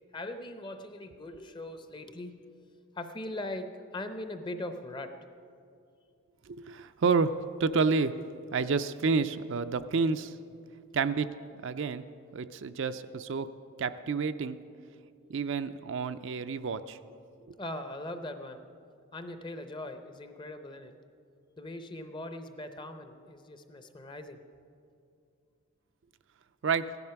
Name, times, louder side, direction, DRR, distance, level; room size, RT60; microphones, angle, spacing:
voice 1, 0.1-2.4 2.9-5.1 17.6-18.7 19.1-20.9 21.6-24.4, left 1 dB, 20° left, 8 dB, 0.6 m, -40 dB
voice 2, 6.5-8.1 8.5-10.4 10.9-11.3 11.6-12.0 12.3-13.5 13.8-14.6 15.3-17.0 17.5-17.6 26.6-26.8, right 4 dB, 60° right, 10 dB, 0.4 m, -29 dB
15.5 x 11.0 x 5.8 m, 2.5 s
head